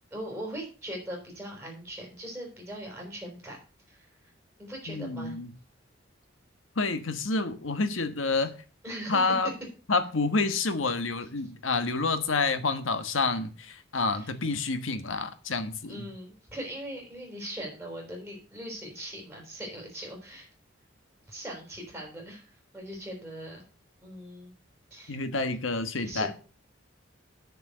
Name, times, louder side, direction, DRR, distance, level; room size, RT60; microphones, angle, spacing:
voice 1, 0.1-3.6 3.9-4.3 4.6-5.3 8.3-8.4 8.8-9.3 14.1-14.3 15.9-20.5 21.3-23.6 24.0-24.5 24.9-25.2 26.0-26.3, right 1 dB, 5° right, 4.6 m, -40 dB
voice 2, 4.9-5.5 6.7-8.6 9.1-9.5 9.9-16.1 25.1-26.3, left 3 dB, 90° left, 1.4 m, -28 dB
9.0 x 6.8 x 6.8 m
head